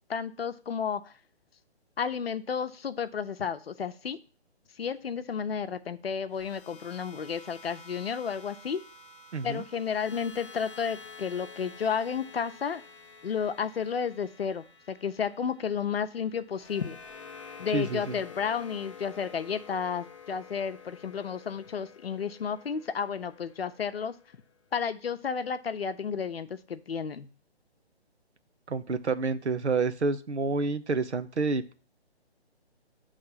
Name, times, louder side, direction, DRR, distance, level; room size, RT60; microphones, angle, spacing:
voice 1, 0.1-1.1 2.0-4.2 4.8-8.8 9.4-12.8 13.2-17.0 17.6-24.1 24.7-27.3, left 6 dB, 65° left, 11 dB, 0.7 m, -32 dB
sound 1, 6.3-24.5, left 5 dB, 30° left, 0.6 m, -49 dB
voice 2, 9.3-9.6 17.7-18.1 28.7-31.7, right 4 dB, 85° right, 10 dB, 0.8 m, -29 dB
9.4 x 3.3 x 5.6 m, 0.39 s
figure-of-eight pair, 145°, 33 cm